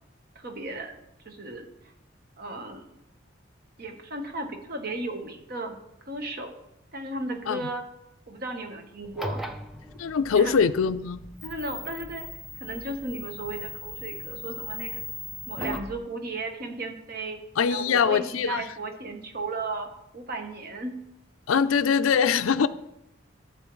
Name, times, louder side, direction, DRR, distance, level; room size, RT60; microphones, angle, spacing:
voice 1, 0.3-1.0 1.2-1.7 2.4-2.9 3.8-5.8 6.1-6.5 6.9-7.8 8.3-9.4 10.3-10.6 11.4-12.3 12.6-15.0 15.5-17.4 17.7-19.9 20.1-21.1, right 2 dB, 50° right, 1.1 m, -35 dB
sound 1, 9.0-16.0, left 1 dB, ahead, 0.5 m, -38 dB
voice 2, 10.0-11.2 17.6-18.6 21.5-22.7, left 6 dB, 85° left, 0.4 m, -23 dB
13.0 x 7.1 x 3.1 m
head